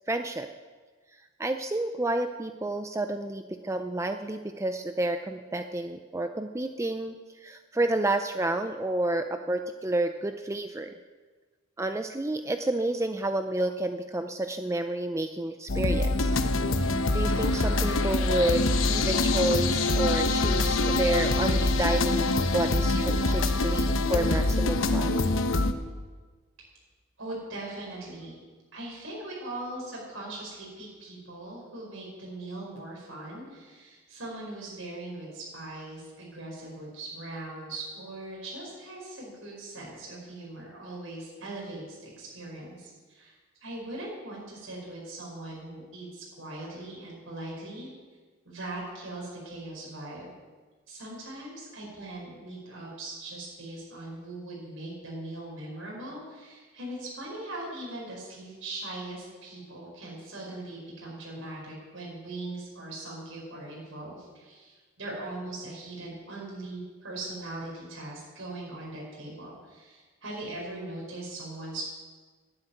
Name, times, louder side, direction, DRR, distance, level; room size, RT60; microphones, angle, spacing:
voice 1, 0.1-0.5 1.4-10.9 11.8-16.4 16.8-25.2, right 2 dB, 15° right, 7 dB, 0.5 m, -30 dB
sound 1, 15.7-25.7, left 2 dB, 75° left, 0.9 m, -25 dB
voice 2, 27.2-28.4 28.7-47.9 48.4-50.3 50.9-71.8, right 2 dB, 75° right, -3 dB, 4.9 m, -40 dB
12.0 x 9.8 x 9.2 m, 1.4 s
head